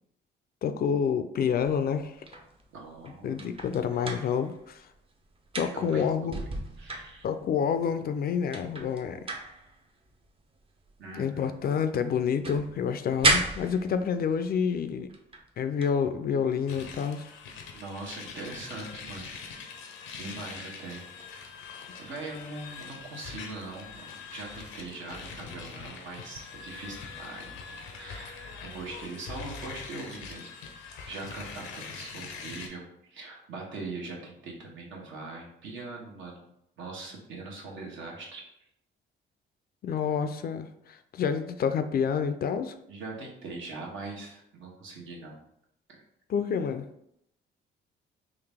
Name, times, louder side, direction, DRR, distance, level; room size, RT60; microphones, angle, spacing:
voice 1, 0.6-2.1 3.2-4.9 5.6-6.4 7.2-9.3 11.1-15.1 15.6-17.3 39.8-42.7 46.3-46.9, left 7 dB, 50° left, 9 dB, 0.4 m, -28 dB
sound 1, 1.6-5.0 5.2-7.7 8.2-8.3 8.5-11.8 12.1-14.4 15.1-15.5 15.8-16.0 19.1-19.3, right 2 dB, 25° right, 0.6 m, -34 dB
voice 2, 2.7-3.4 5.7-6.4 6.8-7.2 11.0-11.5 17.7-19.3 20.2-21.0 22.0-30.5 31.1-36.5 36.8-38.4 42.9-45.4, right 3 dB, 75° right, -1 dB, 1.1 m, -41 dB
sound 2, 16.7-32.7, left 5 dB, 85° left, 0.6 m, -43 dB
3.9 x 2.5 x 3.5 m, 0.76 s
cardioid pair, 90°, 20 cm